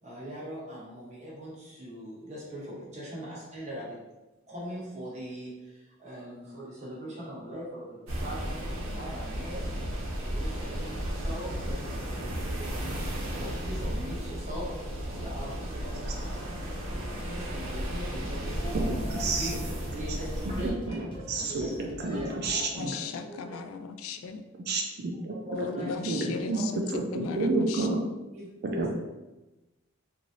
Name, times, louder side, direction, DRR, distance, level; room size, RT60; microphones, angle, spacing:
voice 1, 0.0-4.0 4.5-9.7 10.2-16.4 16.8-20.8 21.1-23.6 25.3-26.6 27.3-27.5 28.3-28.9, equal, 35° right, -6 dB, 1.1 m, -41 dB
sound 1, 8.1-20.7, equal, 80° right, 0.8 m, -34 dB
sound 2, 17.6-22.6, left 1 dB, 25° left, 0.5 m, -44 dB
voice 2, 18.7-19.5 20.6-22.9 24.7-25.3 25.8-26.6 26.9-28.0 28.8-28.9, right 3 dB, 50° right, 0 dB, 0.4 m, -30 dB
voice 3, 22.7-24.4 25.5-26.8 27.1-27.9, left 5 dB, 85° left, 8 dB, 0.3 m, -36 dB
3.1 x 2.6 x 2.7 m, 1.0 s
head